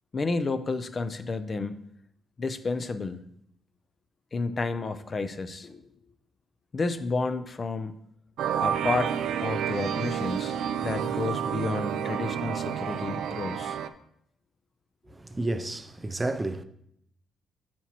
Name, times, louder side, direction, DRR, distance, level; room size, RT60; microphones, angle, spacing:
voice 1, 0.1-1.8 2.4-3.2 4.3-5.8 6.7-8.0 8.6-10.6 10.8-13.8, left 3 dB, 35° left, 0.5 m, -31 dB
sound 1, 8.4-13.9, right 9 dB, 80° right, 0.4 m, -30 dB
voice 2, 15.1-16.6, right 2 dB, 20° right, 0.5 m, -31 dB
8.7 x 5.8 x 2.9 m
cardioid pair, 90°, 0 cm